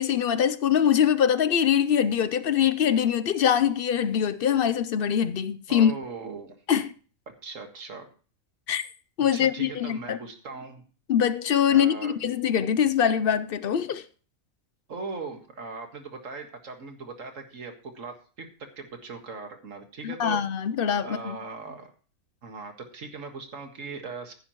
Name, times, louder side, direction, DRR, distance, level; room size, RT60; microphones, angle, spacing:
voice 1, 0.0-5.9 6.7-6.9 8.7-8.8 9.2-10.2 11.1-14.0 20.0-21.4, left 8 dB, 55° left, 0.6 m, -23 dB
voice 2, 5.7-6.6 7.4-8.1 9.3-10.8 11.7-12.1 14.9-18.5 18.8-20.4 21.0-21.9 22.4-24.3, right 4 dB, 70° right, 2.0 m, -39 dB
15.0 x 9.9 x 3.0 m
omnidirectional pair, 1.4 m